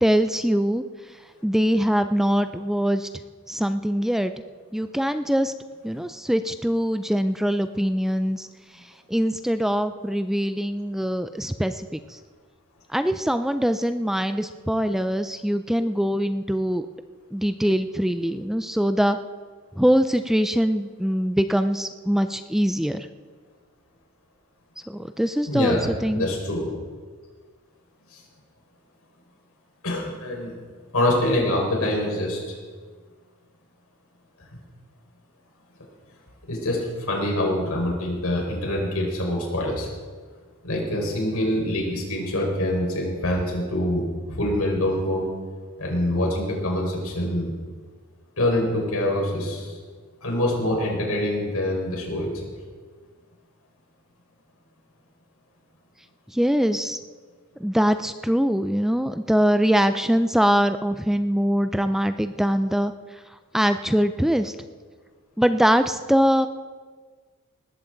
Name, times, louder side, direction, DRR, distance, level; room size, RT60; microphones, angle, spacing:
voice 1, 0.0-0.8 1.4-3.1 3.5-4.3 4.7-5.5 5.8-8.5 9.1-12.2 12.9-16.9 17.3-19.2 19.8-23.1 24.9-26.2 56.3-57.0 57.6-62.9 63.5-64.5 65.4-66.5, equal, ahead, 10 dB, 0.4 m, -23 dB
voice 2, 25.5-25.8 26.1-26.7 28.1-28.2 29.8-30.5 30.9-32.4 36.5-39.9 40.6-45.2 45.8-47.5 48.4-49.8 50.2-52.3, left 1 dB, 85° left, -1 dB, 5.0 m, -25 dB
19.5 x 14.5 x 3.9 m, 1.5 s
head